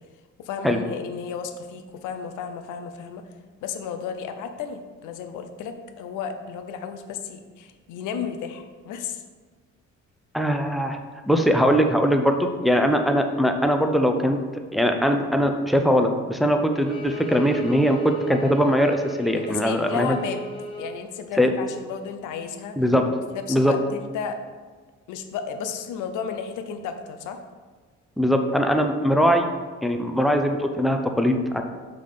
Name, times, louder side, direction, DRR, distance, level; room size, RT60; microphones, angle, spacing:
voice 1, 0.4-3.2 3.6-9.2 19.4-20.4 20.8-22.8 23.3-24.4 25.1-27.4, left 7 dB, 90° left, 7 dB, 0.6 m, -33 dB
voice 2, 10.3-11.0 11.3-14.4 14.7-20.1 21.4-21.5 22.8-23.1 23.5-23.7 28.2-29.5 29.8-31.6, equal, ahead, 5 dB, 0.6 m, -21 dB
Bowed string instrument, 16.7-21.0, right 1 dB, 15° left, 1.3 m, -34 dB
5.6 x 3.9 x 4.9 m, 1.4 s
cardioid pair, 90°, 30 cm